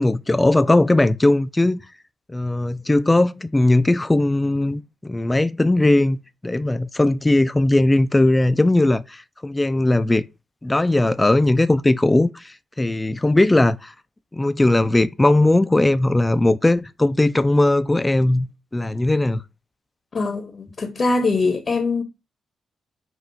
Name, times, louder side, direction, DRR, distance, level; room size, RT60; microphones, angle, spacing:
voice 1, 0.0-1.8 2.3-6.2 6.4-10.2 10.6-13.9 14.3-18.5 18.7-19.4, left 2 dB, 20° left, 0.4 m, -18 dB
voice 2, 20.1-22.0, left 3 dB, 50° left, 0.9 m, -22 dB
6.1 x 2.5 x 2.6 m
supercardioid pair, 50°, 0 cm